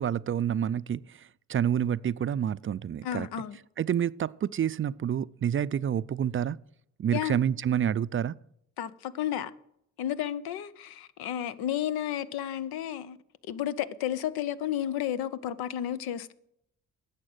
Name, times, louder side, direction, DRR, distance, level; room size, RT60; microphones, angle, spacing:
voice 1, 0.0-3.3 3.8-6.6 7.0-8.4, right 9 dB, 35° right, 0.4 m, -28 dB
voice 2, 3.0-3.6 7.1-7.4 8.8-9.5 10.0-13.2 13.5-16.3, left 11 dB, 75° left, 0.8 m, -32 dB
11.0 x 7.5 x 7.9 m
supercardioid pair, 55°, 37 cm